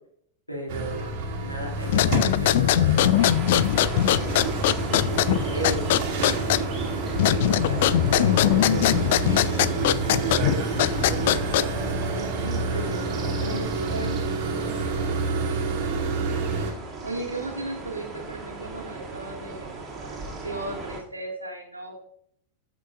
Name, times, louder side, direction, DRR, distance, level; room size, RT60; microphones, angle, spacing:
voice 1, 0.5-3.3 3.7-6.7 7.3-11.5 11.7-15.1, right 1 dB, 90° left, -1 dB, 2.4 m, -37 dB
sound 1, 0.7-16.7, right 3 dB, 45° right, 2.2 m, -28 dB
sound 2, 1.8-11.9, left 13 dB, 55° left, 0.3 m, -22 dB
sound 3, 3.2-21.0, right 4 dB, 25° right, 2.7 m, -38 dB
voice 2, 14.5-14.9 17.0-22.1, right 2 dB, 85° right, 0 dB, 1.9 m, -36 dB
13.5 x 5.9 x 2.5 m, 0.69 s
figure-of-eight pair, 90°, 0 cm